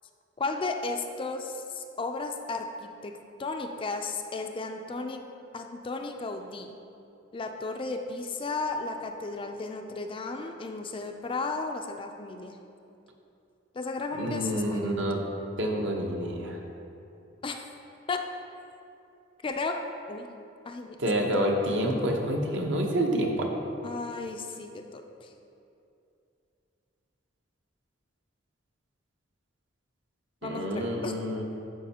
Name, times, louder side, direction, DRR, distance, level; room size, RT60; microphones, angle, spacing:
voice 1, 0.4-5.2 5.5-6.7 7.3-12.6 13.7-15.3 17.4-17.6 18.1-18.2 19.4-19.8 20.1-20.3 20.7-21.3 23.8-25.3 30.4-31.1, left 3 dB, 25° left, 5 dB, 0.3 m, -34 dB
voice 2, 14.1-15.2 15.6-16.6 21.0-23.5 30.4-31.4, equal, 65° right, 0 dB, 0.9 m, -28 dB
11.5 x 5.3 x 2.8 m, 2.6 s
head